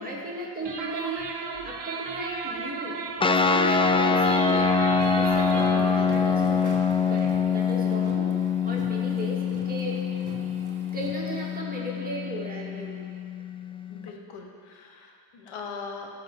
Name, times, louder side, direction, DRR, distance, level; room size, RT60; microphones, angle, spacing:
voice 1, 0.0-4.8 5.1-6.8 7.1-8.3 8.6-10.0 10.9-12.9, right 1 dB, 15° right, -5 dB, 2.6 m, -36 dB
sound 1, 0.6-6.0, right 4 dB, 55° right, 1.1 m, -35 dB
sound 2, 3.2-14.1, left 5 dB, 15° left, 0.3 m, -25 dB
sound 3, 4.9-11.6, right 3 dB, 40° right, 1.3 m, -46 dB
voice 2, 13.9-16.1, left 4 dB, 90° left, 2 dB, 1.3 m, -41 dB
16.0 x 6.2 x 4.3 m, 2.2 s
cardioid pair, 90°, 49 cm